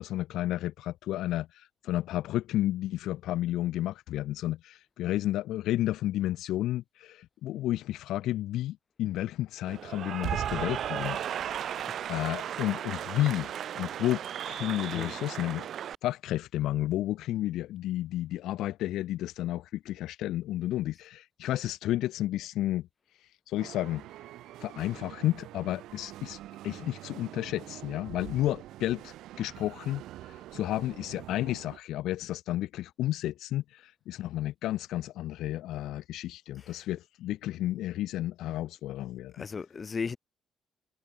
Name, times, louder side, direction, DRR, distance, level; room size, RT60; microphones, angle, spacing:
voice 1, 0.0-15.7 16.0-22.9 23.2-24.0 24.6-39.4, left 14 dB, 85° left, 1.0 m, -32 dB
Cheering / Applause, 9.7-16.0, right 10 dB, 65° right, 4.6 m, -35 dB
sound 1, 23.6-31.8, right 14 dB, 85° right, 5.3 m, -46 dB
voice 2, 39.3-40.2, left 5 dB, 40° left, 5.4 m, -36 dB
cardioid pair, 90°, 0 cm